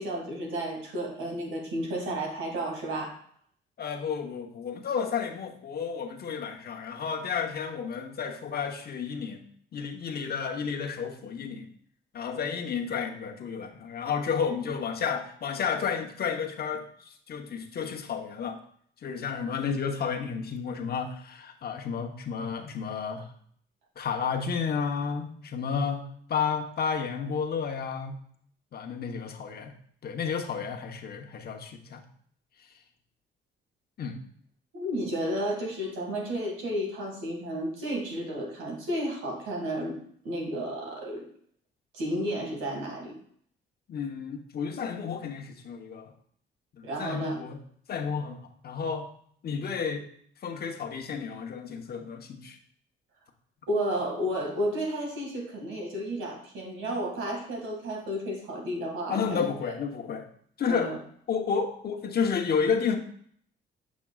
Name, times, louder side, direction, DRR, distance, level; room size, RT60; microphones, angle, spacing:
voice 1, 0.0-3.2 34.7-40.0 40.2-41.2 41.9-43.2 46.8-47.4 53.7-59.4 60.7-61.0, equal, 85° right, 1 dB, 2.0 m, -32 dB
voice 2, 3.8-9.4 9.7-11.7 12.1-18.6 19.0-23.3 24.0-26.0 26.3-28.2 28.7-29.7 30.0-32.0 32.6-32.7 34.0-34.2 43.9-46.1 46.8-47.6 47.9-48.4 48.6-49.1 49.4-50.1 50.4-52.6 59.1-60.2 60.6-61.0 61.3-63.0, left 6 dB, 50° left, 3 dB, 1.0 m, -31 dB
7.3 x 6.2 x 2.3 m, 0.62 s
cardioid pair, 90°, 20 cm